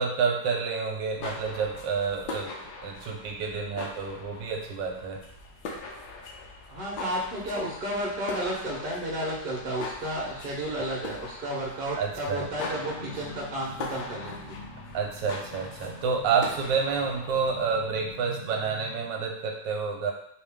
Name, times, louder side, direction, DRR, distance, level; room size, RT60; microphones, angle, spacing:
voice 1, 0.0-2.5 2.8-5.2 12.0-12.5 14.9-20.1, right 5 dB, 85° right, 1 dB, 1.3 m, -29 dB
sound 1, 1.0-18.3, left 3 dB, 85° left, 1.5 m, -42 dB
voice 2, 6.7-14.6, right 1 dB, 40° right, -4 dB, 0.9 m, -32 dB
sound 2, 12.3-19.1, left 2 dB, 60° left, 1.0 m, -46 dB
4.3 x 2.9 x 3.5 m, 0.72 s
omnidirectional pair, 2.0 m